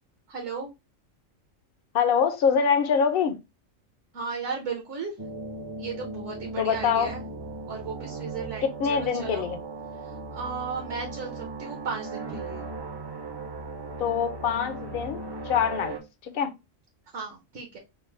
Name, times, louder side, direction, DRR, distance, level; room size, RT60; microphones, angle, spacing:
voice 1, 0.3-0.7 4.1-5.1 5.8-7.2 7.7-9.5 9.9-12.7 17.1-17.8, right 5 dB, 65° right, 1.2 m, -35 dB
voice 2, 1.9-3.4 6.6-7.1 8.6-9.6 14.0-16.0 16.2-16.5, left 7 dB, 55° left, 0.7 m, -24 dB
sound 1, 5.2-16.0, right 3 dB, 30° right, 0.5 m, -37 dB
5.1 x 2.1 x 3.1 m
omnidirectional pair, 1.3 m